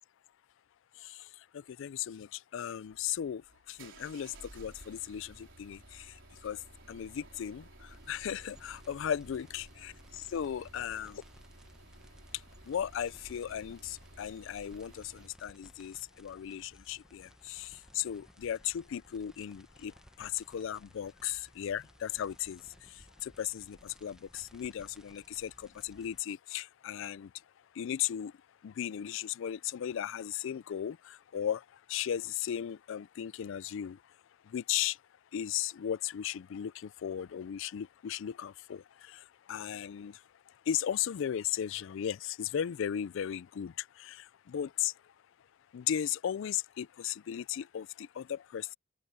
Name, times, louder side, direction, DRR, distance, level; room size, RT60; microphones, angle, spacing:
voice 1, 1.5-3.4 3.7-6.1 6.4-6.6 6.9-7.6 8.1-11.2 12.7-19.9 20.2-22.6 23.2-27.3 27.8-28.3 28.6-31.6 31.9-34.0 34.5-35.0 35.3-39.2 39.5-40.2 40.7-44.9 45.7-48.7, left 9 dB, 65° left, 0.4 m, -36 dB
sound 1, 2.9-15.4, right 2 dB, 65° right, 4.7 m, -55 dB
sound 2, 7.9-26.2, equal, 5° right, 1.1 m, -60 dB
open air
head